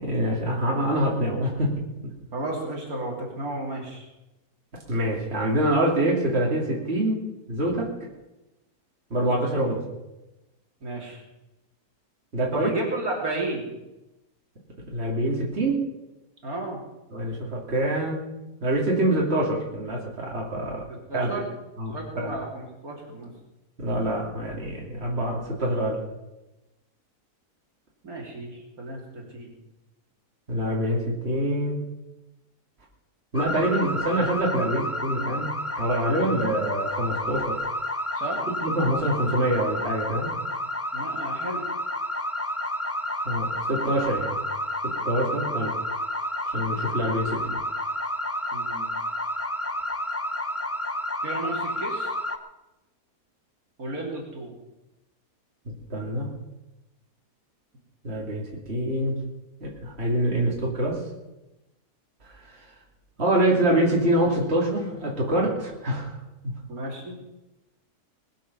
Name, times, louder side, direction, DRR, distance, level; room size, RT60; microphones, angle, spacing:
voice 1, 0.0-1.7 4.9-7.2 7.5-7.9 9.1-9.8 12.3-12.7 14.9-15.8 17.1-18.2 18.6-20.8 21.1-21.3 21.8-22.3 23.8-26.0 30.5-31.8 33.3-35.5 35.8-37.6 38.6-40.3 43.2-44.4 45.0-45.7 46.5-47.6 55.6-56.3 58.0-59.1 59.6-61.0 62.4-62.6 63.2-66.2 66.4-66.5, right 1 dB, 40° right, -3 dB, 3.1 m, -25 dB
voice 2, 2.3-4.0 9.3-9.4 10.8-11.2 12.5-13.7 16.4-16.8 21.1-21.5 21.9-23.3 28.0-29.5 38.2-38.4 40.9-41.6 48.5-48.9 51.2-52.1 53.8-54.5 66.7-67.1, right 2 dB, 65° right, -1 dB, 3.4 m, -33 dB
sound 1, 33.3-52.4, left 1 dB, 15° left, 0.5 m, -30 dB
21.0 x 7.7 x 6.9 m, 0.99 s
omnidirectional pair, 1.7 m